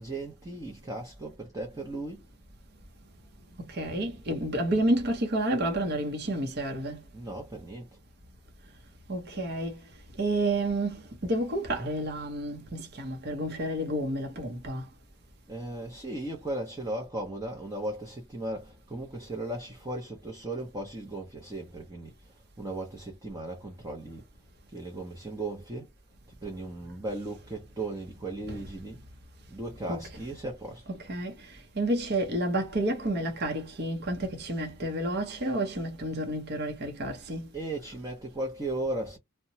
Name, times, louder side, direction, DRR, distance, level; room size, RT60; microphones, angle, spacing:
voice 1, 0.0-2.2 7.1-7.9 15.5-22.1 22.6-24.2 24.7-25.9 26.4-29.0 29.5-30.9 37.5-39.2, right 2 dB, 15° right, 0.6 m, -36 dB
voice 2, 3.7-7.0 9.1-9.8 10.2-14.9 28.4-28.7 29.9-30.2 30.9-37.5, right 1 dB, 50° right, 0.8 m, -30 dB
2.9 x 2.1 x 2.7 m
head